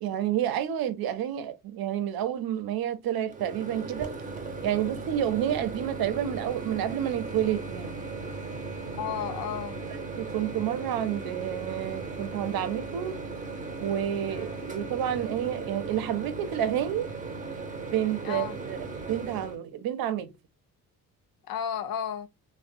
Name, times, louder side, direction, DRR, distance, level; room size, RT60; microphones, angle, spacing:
voice 1, 0.0-4.1 4.6-8.0 10.2-13.2 13.8-17.1 17.9-20.3, right 10 dB, 70° right, 0.5 m, -29 dB
Microwave oven, 3.3-19.6, right 3 dB, 20° right, 0.7 m, -37 dB
voice 2, 9.0-9.8 14.3-14.6 18.2-18.6 21.5-22.3, left 8 dB, 65° left, 0.5 m, -33 dB
2.7 x 2.1 x 2.4 m
cardioid pair, 90°, 38 cm